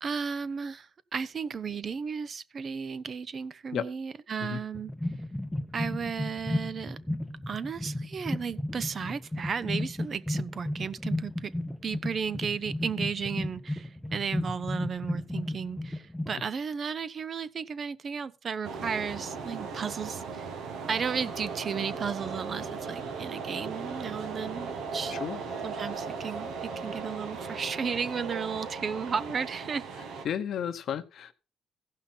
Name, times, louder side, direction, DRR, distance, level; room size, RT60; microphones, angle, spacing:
voice 1, 0.0-4.9 5.7-7.0 7.5-11.5 11.8-20.5 20.9-25.2 25.6-30.1, right 6 dB, 45° right, 0.6 m, -34 dB
sound 1, 4.7-16.4, left 1 dB, 10° left, 0.8 m, -34 dB
sound 2, 18.6-30.2, right 5 dB, 85° right, 1.5 m, -37 dB
voice 2, 25.1-25.4 30.2-31.3, left 8 dB, 70° left, 0.8 m, -33 dB
15.5 x 5.7 x 4.3 m
cardioid pair, 90°, 0 cm